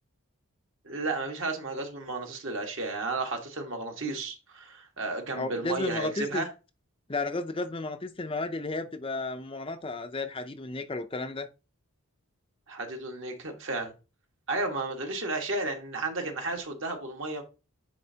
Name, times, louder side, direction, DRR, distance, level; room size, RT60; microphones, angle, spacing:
voice 1, 0.8-6.5 12.7-13.9 14.5-17.4, right 3 dB, 55° right, 1.5 m, -33 dB
voice 2, 5.4-6.4 7.1-11.5, left 2 dB, 25° left, 0.5 m, -33 dB
9.6 x 4.2 x 2.8 m
head